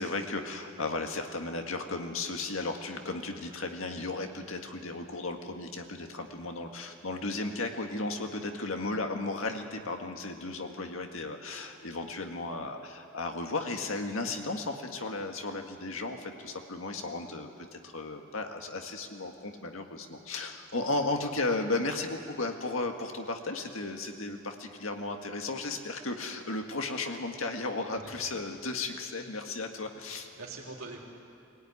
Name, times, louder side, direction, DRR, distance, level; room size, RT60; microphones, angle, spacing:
voice 1, 0.0-30.3, left 2 dB, 70° left, 4 dB, 1.9 m, -35 dB
voice 2, 27.9-28.3 30.1-31.0, right 3 dB, 85° right, -1 dB, 3.8 m, -44 dB
23.0 x 17.0 x 9.7 m, 2.6 s
head